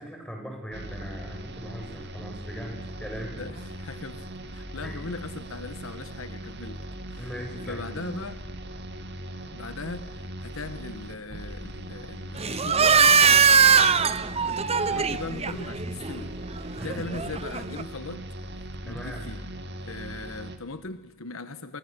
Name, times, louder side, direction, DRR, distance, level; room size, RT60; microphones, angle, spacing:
voice 1, 0.0-3.5 4.8-5.0 7.2-8.0 16.7-17.2 18.8-19.3, equal, 5° left, 6.5 m, -39 dB
sound 1, 0.7-20.6, right 1 dB, 55° right, 2.2 m, -39 dB
voice 2, 3.4-6.8 7.1-8.5 9.5-16.3 16.8-18.3 18.8-19.4 19.8-21.8, left 3 dB, 70° left, 1.3 m, -39 dB
sound 2, 12.4-17.8, right 6 dB, 30° right, 0.9 m, -22 dB
29.5 x 24.5 x 6.9 m
head